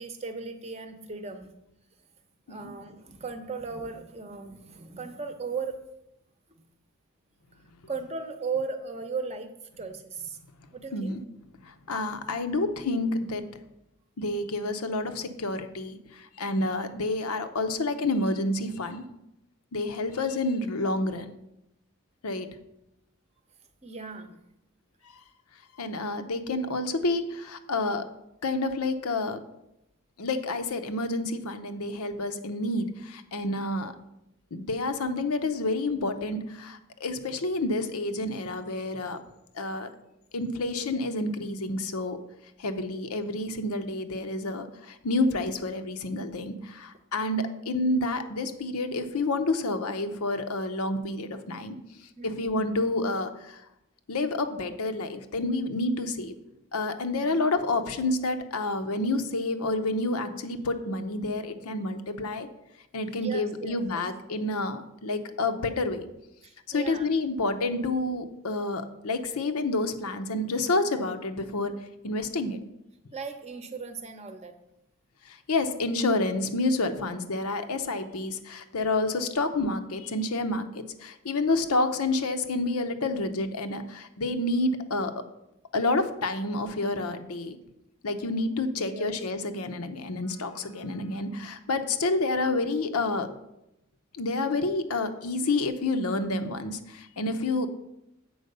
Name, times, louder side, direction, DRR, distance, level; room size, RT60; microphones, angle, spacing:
voice 1, 0.0-1.5 2.5-5.8 7.9-10.4 10.7-11.2 23.8-24.3 52.2-52.7 57.2-57.3 63.2-64.0 66.4-67.1 73.1-74.5 88.8-89.1, right 4 dB, 30° right, 7 dB, 0.7 m, -37 dB
voice 2, 10.9-11.2 11.6-13.4 14.2-19.0 19.7-21.3 22.2-22.5 25.8-28.0 28.4-29.4 30.2-33.9 34.5-39.2 39.5-39.9 40.3-42.2 42.6-51.8 52.2-53.6 54.1-56.3 56.7-62.5 62.9-66.1 66.7-71.7 72.0-72.6 75.3-85.1 85.7-87.6 88.0-93.3 94.2-97.7, left 2 dB, 90° left, 7 dB, 0.8 m, -29 dB
7.9 x 4.7 x 6.7 m, 0.86 s
head